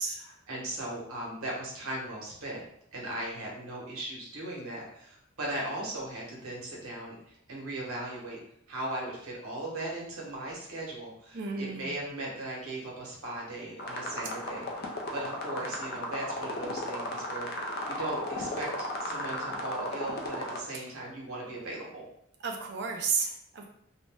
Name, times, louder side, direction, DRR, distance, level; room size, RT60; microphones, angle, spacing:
voice 1, 0.0-2.6 2.9-8.4 8.7-18.7 19.0-22.0, right 1 dB, 85° right, -3 dB, 1.0 m, -38 dB
voice 2, 11.3-11.9 20.7-20.8 22.4-23.7, right 5 dB, 50° right, 3 dB, 0.5 m, -32 dB
sound 1, 13.8-20.6, left 1 dB, 45° left, 0.4 m, -35 dB
2.5 x 2.1 x 3.3 m, 0.72 s
head